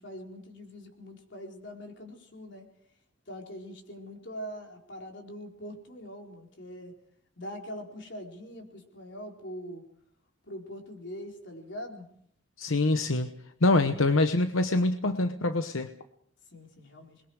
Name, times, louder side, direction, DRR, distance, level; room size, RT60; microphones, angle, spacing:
voice 1, 0.0-2.7 3.3-6.9 7.4-9.8 10.5-12.1 16.5-17.2, equal, 60° left, 2 dB, 4.4 m, -43 dB
voice 2, 12.6-13.3 13.6-15.9, left 2 dB, 85° left, 8 dB, 1.1 m, -25 dB
27.5 x 22.0 x 4.9 m, 0.71 s
head